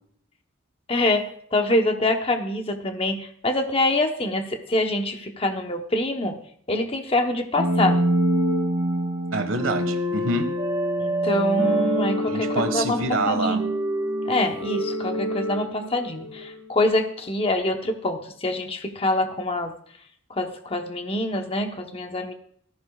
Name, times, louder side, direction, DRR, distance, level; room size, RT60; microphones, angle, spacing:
voice 1, 0.9-6.4 6.7-8.0 11.0-13.0 13.3-13.6 14.3-19.7 20.3-22.3, left 1 dB, 30° left, 5 dB, 1.0 m, -25 dB
sound 1, 7.6-16.5, right 1 dB, 25° right, 1.9 m, -25 dB
voice 2, 9.3-10.5 12.3-13.6, right 2 dB, 85° right, 7 dB, 1.6 m, -26 dB
17.0 x 14.0 x 2.4 m, 0.63 s
head